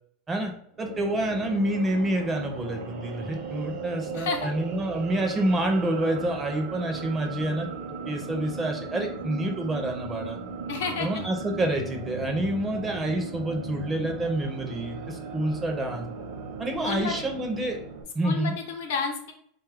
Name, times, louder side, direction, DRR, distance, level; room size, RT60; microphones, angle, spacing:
sound 1, 0.7-18.0, right 4 dB, 60° right, 0.7 m, -37 dB
voice 1, 0.8-7.7 8.1-10.4 11.0-16.1 16.6-17.8 18.1-18.5, right 1 dB, 15° right, 3 dB, 0.4 m, -28 dB
voice 2, 4.1-4.5 10.7-11.2 16.8-17.3 18.2-19.3, left 5 dB, 80° left, 3 dB, 0.7 m, -31 dB
3.6 x 2.3 x 3.3 m, 0.64 s
supercardioid pair, 170°, 0 cm